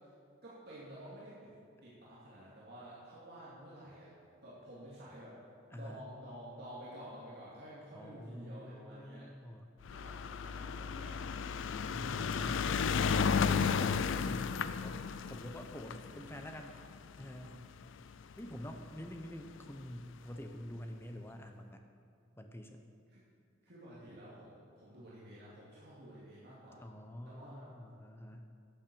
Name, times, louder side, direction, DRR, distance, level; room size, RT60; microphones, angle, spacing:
voice 1, 0.4-1.5 1.8-4.2 4.4-5.4 5.7-9.3 9.9-11.3 11.8-13.3 23.1-23.2 23.6-26.8 27.2-27.7, equal, 50° right, -8 dB, 2.3 m, -51 dB
voice 2, 7.9-9.8 11.9-12.9 13.6-15.0 15.3-16.8 17.2-17.6 18.4-21.8 22.4-22.9 26.8-28.5, equal, 10° left, 5 dB, 0.7 m, -47 dB
sound 1, 9.8-18.3 19.2-19.3 19.5-19.6 19.8-19.9, left 6 dB, 65° left, 0.4 m, -34 dB
11.5 x 7.4 x 6.9 m, 2.3 s
head